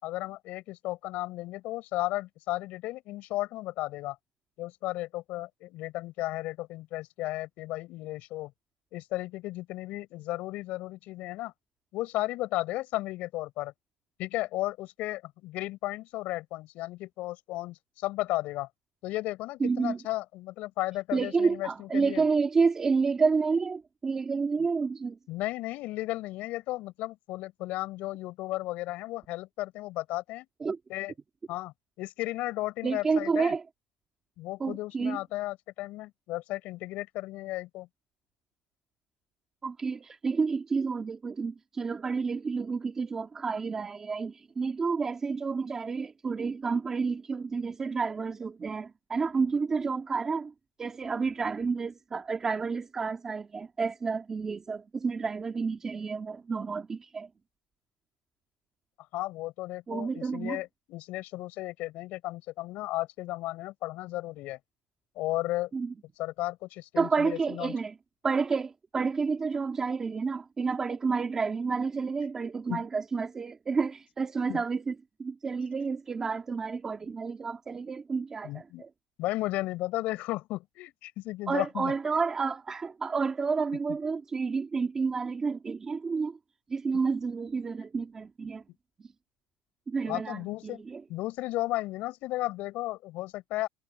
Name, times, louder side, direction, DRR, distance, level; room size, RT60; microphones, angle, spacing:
voice 1, 0.0-4.2 4.6-8.5 8.9-11.5 11.9-13.7 14.2-18.7 19.0-22.2 25.3-30.5 30.9-31.1 31.5-33.5 34.4-37.9 59.1-64.6 65.2-65.7 66.2-67.8 72.2-72.3 72.7-72.8 74.5-74.6 78.4-78.8 79.2-81.9 90.1-90.8 91.1-93.7, left 18 dB, 55° left, 7.7 m, -34 dB
voice 2, 19.6-20.0 21.1-25.2 30.6-30.8 32.8-33.6 34.6-35.2 39.6-50.5 50.8-57.3 59.9-60.6 65.7-65.9 67.0-68.0 68.2-74.9 75.2-78.9 81.5-86.4 86.7-88.6 89.0-89.1 89.9-91.0, right 4 dB, 15° right, 2.5 m, -30 dB
cardioid pair, 180°, 3 cm